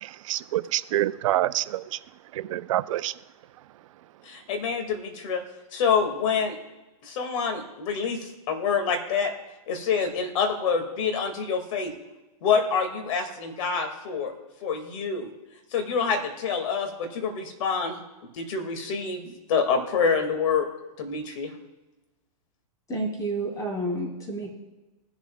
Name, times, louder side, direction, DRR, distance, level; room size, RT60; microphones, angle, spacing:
voice 1, 0.0-2.0 2.3-3.1, right 14 dB, 60° right, 0.5 m, -27 dB
voice 2, 4.2-5.4 5.7-6.6 7.0-9.3 9.7-11.9 12.4-14.3 14.6-15.3 15.7-18.0 18.4-20.7 21.0-21.5, left 6 dB, 55° left, 2.0 m, -26 dB
voice 3, 22.9-24.5, right 1 dB, 20° left, 2.7 m, -30 dB
20.0 x 7.2 x 2.3 m
hypercardioid pair, 135°, 19 cm